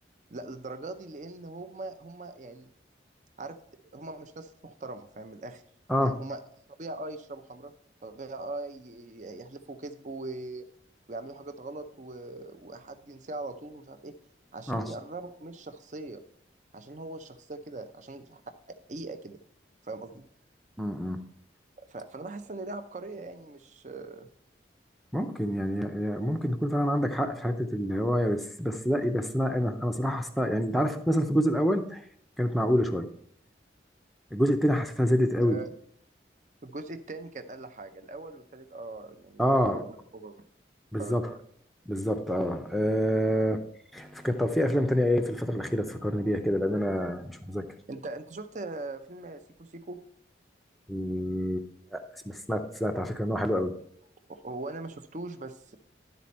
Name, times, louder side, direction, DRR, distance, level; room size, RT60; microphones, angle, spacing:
voice 1, 0.3-2.7 3.4-3.6 3.9-5.6 6.0-6.4 6.8-7.7 8.0-10.6 11.1-14.2 14.5-16.2 16.7-18.4 18.9-19.4 19.8-20.2 21.9-24.3 35.4-35.7 36.6-40.4 41.0-41.4 47.9-50.0 54.3-55.8, right 2 dB, 40° right, 9 dB, 0.6 m, -41 dB
voice 2, 20.8-21.2 25.1-32.0 32.4-33.1 34.3-35.6 39.4-39.8 40.9-41.3 41.9-43.6 43.9-47.7 50.9-53.7, equal, ahead, 6 dB, 0.5 m, -27 dB
12.0 x 4.2 x 4.2 m, 0.65 s
head